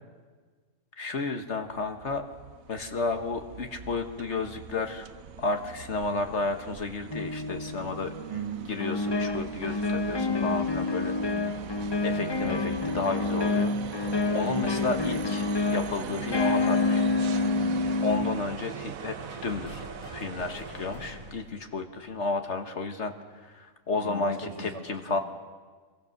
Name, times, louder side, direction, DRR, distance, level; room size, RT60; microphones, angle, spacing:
voice 1, 1.0-2.3 2.7-5.1 5.4-8.1 8.7-11.2 12.0-13.7 14.3-17.1 18.0-19.2 19.4-19.9 20.1-25.2, left 3 dB, 55° left, 6 dB, 1.6 m, -32 dB
sound 1, 1.7-21.5, right 8 dB, 80° right, 1.3 m, -41 dB
sound 2, 7.1-8.2 8.8-18.4, left 3 dB, 30° left, 0.4 m, -28 dB
voice 2, 8.3-8.7 11.2-11.4 17.3-18.1 23.9-25.2, right 2 dB, 25° right, 3 dB, 1.9 m, -40 dB
sound 3, 19.2-22.7, left 2 dB, 85° left, 2.1 m, -46 dB
27.0 x 22.5 x 6.6 m, 1.5 s
omnidirectional pair, 1.4 m